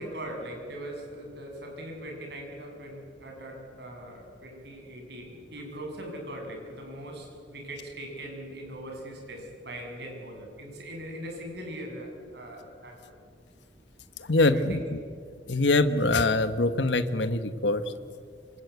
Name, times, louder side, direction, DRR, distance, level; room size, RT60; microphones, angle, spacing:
voice 1, 0.0-13.1 14.5-14.9, right 1 dB, 70° right, 2 dB, 7.5 m, -40 dB
voice 2, 14.3-14.8 15.5-17.8, left 2 dB, 80° left, 10 dB, 1.3 m, -23 dB
27.0 x 26.5 x 8.3 m, 2.3 s
head